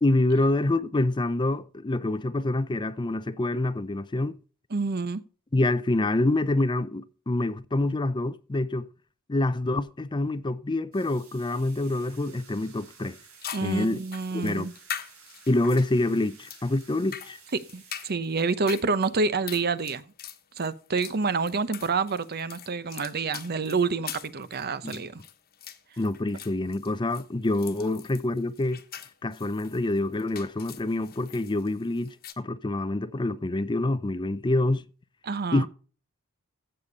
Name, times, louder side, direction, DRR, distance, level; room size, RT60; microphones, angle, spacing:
voice 1, 0.0-4.4 5.5-8.9 9.3-13.2 13.6-14.0 14.3-14.7 15.5-17.4 24.8-25.0 26.0-28.8 29.2-34.8 35.5-35.7, left 2 dB, 20° left, 0.5 m, -26 dB
voice 2, 4.7-5.2 13.5-14.7 17.5-20.0 20.6-25.2 35.2-35.7, right 4 dB, 45° right, 0.8 m, -28 dB
sound 1, 10.9-18.1, right 5 dB, 75° right, 5.5 m, -53 dB
sound 2, 12.8-12.9 13.4-32.3, left 9 dB, 45° left, 1.3 m, -43 dB
15.5 x 6.9 x 4.0 m
head